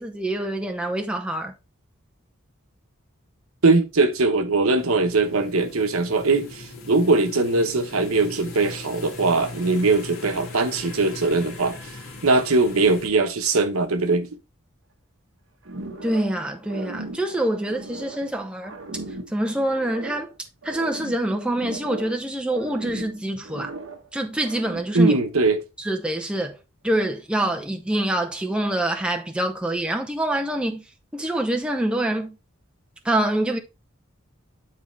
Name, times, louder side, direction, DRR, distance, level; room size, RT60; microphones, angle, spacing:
voice 1, 0.0-1.5 16.0-18.8 19.3-20.3 20.6-23.7 24.1-25.1 25.8-26.6 26.8-30.8 31.1-32.4 33.0-33.6, right 1 dB, 5° right, 0.7 m, -25 dB
voice 2, 3.6-11.8 12.2-14.3 24.9-25.6, right 3 dB, 85° right, 1.0 m, -21 dB
sound 1, 4.8-13.1, left 3 dB, 80° left, 2.0 m, -39 dB
sound 2, 15.6-16.4 16.6-18.3 18.6-20.3 20.6-22.2 22.5-24.1 24.4-25.0, right 2 dB, 60° right, 1.2 m, -37 dB
9.7 x 4.2 x 3.2 m
head